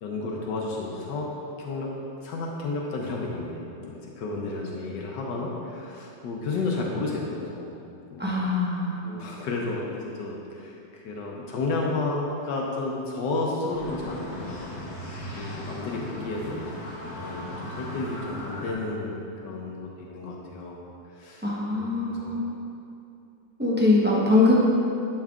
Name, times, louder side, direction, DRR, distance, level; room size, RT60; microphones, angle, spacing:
voice 1, 0.0-1.3 1.6-1.9 2.2-7.7 8.1-8.3 9.0-14.9 15.3-16.6 17.1-20.8 21.2-21.5 21.7-22.3, left 3 dB, 75° left, -2 dB, 1.3 m, -32 dB
voice 2, 8.2-9.0 21.4-22.4 23.6-24.5, left 2 dB, 10° right, -6 dB, 0.5 m, -22 dB
sound 1, 13.7-18.7, left 1 dB, 40° left, 1.3 m, -37 dB
10.5 x 5.5 x 2.4 m, 2.7 s
omnidirectional pair, 1.9 m